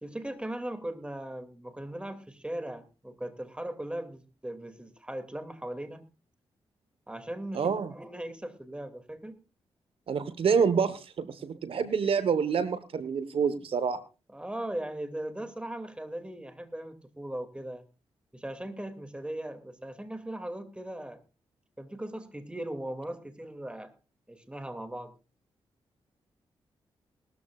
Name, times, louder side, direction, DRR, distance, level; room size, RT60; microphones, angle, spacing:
voice 1, 0.0-6.1 7.1-9.4 14.3-17.8 18.3-21.2 21.8-23.9 24.3-25.1, right 1 dB, 10° right, 8 dB, 2.5 m, -38 dB
voice 2, 7.5-7.9 10.1-14.0, right 6 dB, 70° right, 12 dB, 1.3 m, -27 dB
20.0 x 13.5 x 2.5 m, 0.31 s
cardioid pair, 60°, 10 cm